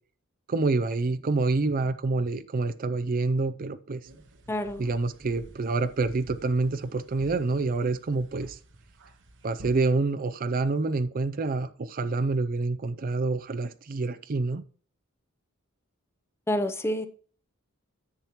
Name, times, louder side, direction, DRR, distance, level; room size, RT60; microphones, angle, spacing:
voice 1, 0.5-4.0 4.8-8.6 9.4-14.6, right 3 dB, 40° right, 11 dB, 0.5 m, -27 dB
sound 1, 4.0-9.9, right 2 dB, 60° right, 1.0 m, -50 dB
voice 2, 4.5-4.8 16.5-17.1, left 1 dB, 10° left, 8 dB, 0.7 m, -28 dB
10.5 x 7.3 x 3.0 m, 0.43 s
head